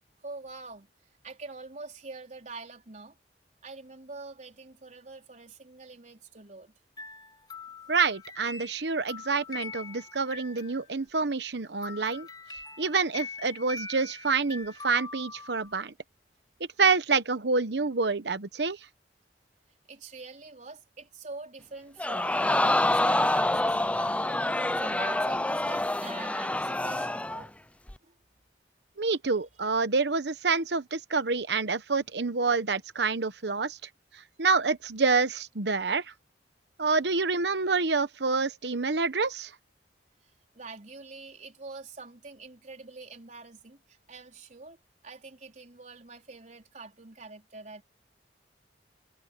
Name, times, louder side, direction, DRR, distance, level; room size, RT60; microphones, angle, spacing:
voice 1, 0.2-0.9 1.2-3.2 3.6-6.7 19.9-27.5 28.0-28.2 40.2-47.8, right 3 dB, 45° right, 4.4 m, -45 dB
sound 1, 7.0-11.3 11.8-15.8, left 4 dB, 25° left, 3.2 m, -43 dB
voice 2, 7.9-12.3 12.8-15.9 16.8-18.8 29.0-33.8 34.1-36.1 36.8-39.5, right 4 dB, 70° right, 1.0 m, -27 dB
Crowd, 22.0-27.5 27.9-28.0, left 1 dB, 10° left, 0.6 m, -27 dB
head